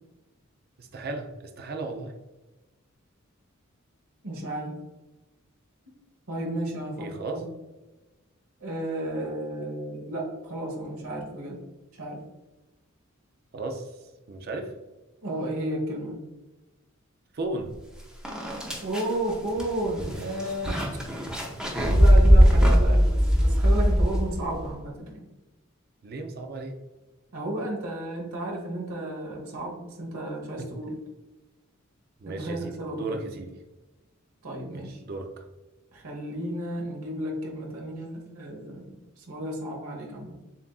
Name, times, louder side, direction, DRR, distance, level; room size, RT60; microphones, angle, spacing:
voice 1, 0.8-1.3 1.6-2.1 7.0-7.4 13.5-13.9 14.3-14.7 17.3-17.7 22.7-22.8 26.0-26.8 30.6-30.7 32.2-33.5 34.7-35.3, right 2 dB, 45° right, 3 dB, 0.5 m, -35 dB
voice 2, 4.2-4.8 6.3-7.5 8.6-11.6 12.0-12.2 15.2-16.2 18.8-20.8 21.9-25.2 27.3-31.0 32.2-33.3 34.4-35.0 35.9-40.3, right 1 dB, 85° right, -1 dB, 1.2 m, -33 dB
sound 1, 17.7-17.8 18.2-24.6, equal, 5° right, 0.6 m, -20 dB
7.0 x 2.5 x 2.3 m, 1.1 s
head